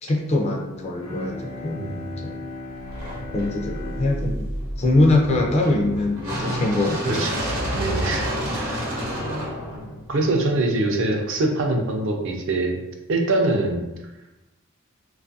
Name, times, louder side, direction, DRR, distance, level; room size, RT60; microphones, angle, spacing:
voice 1, 0.0-1.8 2.2-2.4 3.3-4.5 4.8-7.3, left 2 dB, 30° left, 0 dB, 0.4 m, -22 dB
Bowed string instrument, 1.0-6.4, left 2 dB, 90° left, 0.8 m, -38 dB
sound 1, 2.8-10.9, equal, 90° right, 0.8 m, -30 dB
voice 2, 7.7-9.0 10.1-12.8 13.1-13.9, right 2 dB, 60° right, 2 dB, 0.4 m, -24 dB
2.5 x 2.3 x 2.6 m, 0.98 s
head